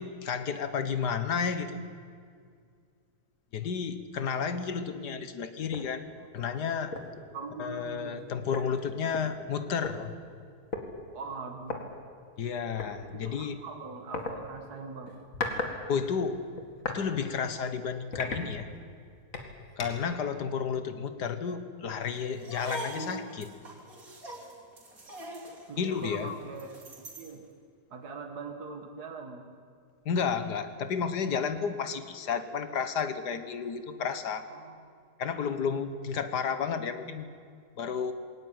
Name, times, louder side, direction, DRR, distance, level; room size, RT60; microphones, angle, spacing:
voice 1, 0.0-1.9 3.5-6.1 6.3-7.0 7.6-10.1 12.4-13.6 15.9-16.4 16.9-18.7 19.8-23.6 25.8-26.4 30.1-34.4 35.2-37.3 37.8-38.1, left 6 dB, 90° left, 11 dB, 1.9 m, -32 dB
sound 1, 5.7-5.9 6.4-6.5 6.9-7.2 8.2-8.3 8.5-9.9 10.7-10.9 11.6-11.8 12.8-13.0 14.1-14.3 15.1-15.7 16.1-17.0 17.5-17.6 18.1-18.9 19.3-20.1, left 3 dB, 55° left, 2.6 m, -36 dB
voice 2, 7.3-8.3 11.1-11.9 13.1-15.2 25.7-27.5 27.9-29.5 34.5-34.8, right 4 dB, 75° right, 3 dB, 2.3 m, -42 dB
sound 2, 22.3-27.4, right 1 dB, 60° right, 3.9 m, -42 dB
21.5 x 18.0 x 9.5 m, 2.2 s
omnidirectional pair, 1.7 m